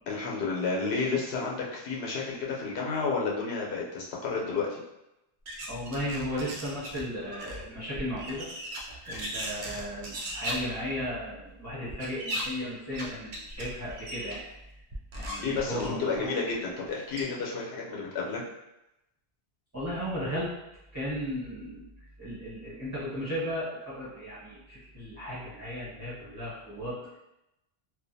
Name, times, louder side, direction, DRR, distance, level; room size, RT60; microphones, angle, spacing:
voice 1, 0.1-4.8 15.4-18.4, left 4 dB, 80° left, -3 dB, 0.9 m, -31 dB
sound 1, 5.5-7.0 7.3-10.5 11.9-12.4 12.9-13.0 13.3-14.4 14.9-16.2 16.9-17.0 17.2-17.3, equal, 60° right, 0.6 m, -37 dB
voice 2, 5.7-8.5 9.0-14.4 15.1-16.4 19.7-20.5 20.9-21.9 22.2-27.2, equal, 15° right, -10 dB, 1.1 m, -35 dB
2.4 x 2.2 x 2.6 m, 0.89 s
omnidirectional pair, 1.1 m